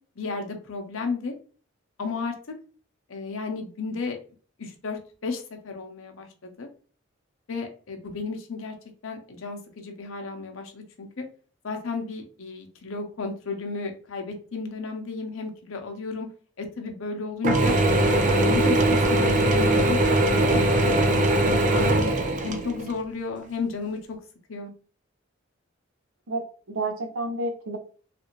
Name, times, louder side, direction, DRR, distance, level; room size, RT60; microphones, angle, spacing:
voice 1, 0.2-1.3 2.0-2.3 3.1-4.2 4.6-6.7 7.5-8.7 9.0-11.2 11.6-16.3 16.6-17.8 18.1-20.0 20.3-20.4 20.7-24.2 24.5-24.7, left 4 dB, 75° left, 4 dB, 0.7 m, -33 dB
Mechanisms / Drill, 17.4-22.9, right 1 dB, 40° right, 0.5 m, -21 dB
voice 2, 26.3-27.8, right 2 dB, 85° right, 5 dB, 0.8 m, -30 dB
3.3 x 2.5 x 3.0 m, 0.41 s
head